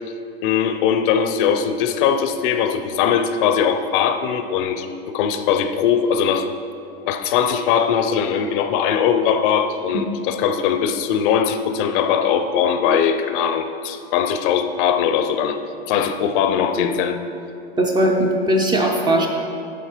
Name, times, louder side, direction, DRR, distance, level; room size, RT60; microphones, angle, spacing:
voice 1, 0.4-6.5 7.1-15.6 15.9-17.2, left 7 dB, 55° left, 9 dB, 0.6 m, -20 dB
voice 2, 17.8-19.3, right 1 dB, 15° right, 1 dB, 0.4 m, -19 dB
9.1 x 6.4 x 4.4 m, 2.6 s
supercardioid pair, 155°, 32 cm